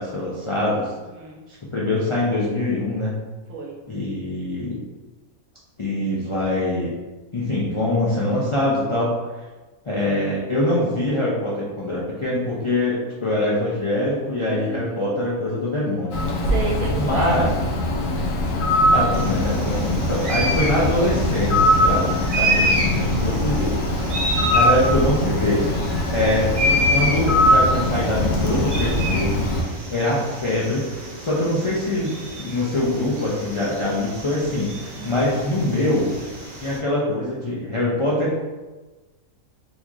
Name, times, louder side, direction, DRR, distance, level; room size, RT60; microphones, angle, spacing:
voice 1, 0.0-0.9 1.7-3.2 3.9-4.8 5.8-6.9 7.3-9.1 9.8-16.2 16.9-17.5 18.9-24.1 24.5-25.6 26.1-32.1 32.4-36.1 36.6-38.4, left 1 dB, 50° left, -7 dB, 0.3 m, -23 dB
voice 2, 1.0-1.4 3.5-3.8 14.4-15.3 16.5-17.4 35.0-35.3, right 4 dB, 75° right, -3 dB, 1.2 m, -33 dB
Bird, 16.1-29.6, left 1 dB, 75° left, 1.0 m, -21 dB
sound 1, 19.1-36.8, equal, 45° right, 0.6 m, -29 dB
4.1 x 2.9 x 2.4 m, 1.2 s
omnidirectional pair, 1.4 m